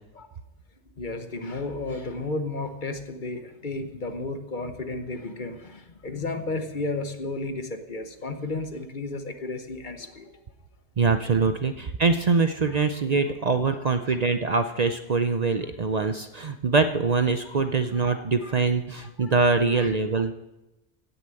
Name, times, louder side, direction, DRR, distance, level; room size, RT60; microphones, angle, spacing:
voice 1, 1.0-10.4 13.7-14.1 17.4-17.6 17.8-18.5 19.0-19.3 19.8-19.9, left 2 dB, 50° left, 8 dB, 1.2 m, -33 dB
voice 2, 11.0-20.3, right 4 dB, 45° right, 9 dB, 0.7 m, -23 dB
16.5 x 6.9 x 7.7 m, 0.98 s
omnidirectional pair, 1.1 m